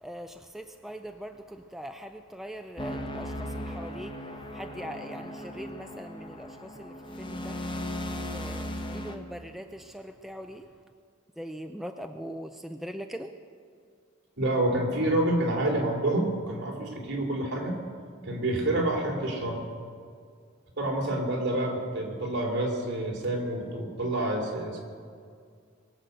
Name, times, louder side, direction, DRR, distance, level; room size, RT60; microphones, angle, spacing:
voice 1, 0.0-7.6 8.3-10.7 11.4-13.3, equal, ahead, 5 dB, 0.4 m, -41 dB
sound 1, 2.8-9.2, left 1 dB, 25° left, 0.9 m, -37 dB
voice 2, 14.4-17.7 18.2-19.6 20.8-24.8, right 1 dB, 55° right, 0 dB, 3.0 m, -28 dB
22.0 x 7.8 x 6.7 m, 2.1 s
head